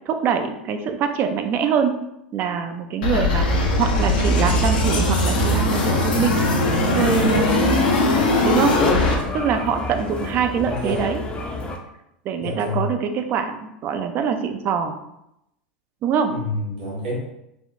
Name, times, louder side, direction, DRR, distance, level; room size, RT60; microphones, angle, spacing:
voice 1, 0.1-2.0 2.3-6.4 6.9-7.6 8.3-8.8 9.3-11.2 12.3-15.0 16.0-16.3, right 6 dB, 45° right, 7 dB, 0.4 m, -24 dB
sound 1, 3.0-9.2, left 1 dB, 75° left, 0.6 m, -20 dB
sound 2, 6.6-11.8, left 2 dB, 20° left, 0.5 m, -29 dB
voice 2, 10.7-11.0 12.4-12.9 16.3-17.2, left 1 dB, 80° right, -6 dB, 1.1 m, -27 dB
3.4 x 2.3 x 2.6 m, 0.83 s
hypercardioid pair, 90°, 5 cm